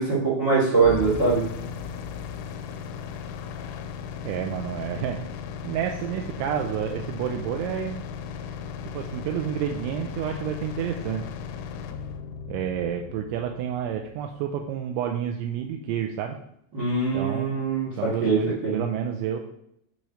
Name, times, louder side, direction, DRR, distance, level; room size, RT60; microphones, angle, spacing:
voice 1, 0.0-1.4 16.7-18.8, right 4 dB, 65° right, -7 dB, 1.0 m, -23 dB
sound 1, 0.8-14.8, left 7 dB, 90° left, 3.3 m, -36 dB
voice 2, 4.2-5.2 5.6-8.0 8.9-11.3 12.5-16.4 17.1-17.5 18.0-19.4, right 9 dB, 85° right, 4 dB, 2.7 m, -29 dB
9.1 x 3.0 x 4.9 m, 0.74 s
omnidirectional pair, 5.8 m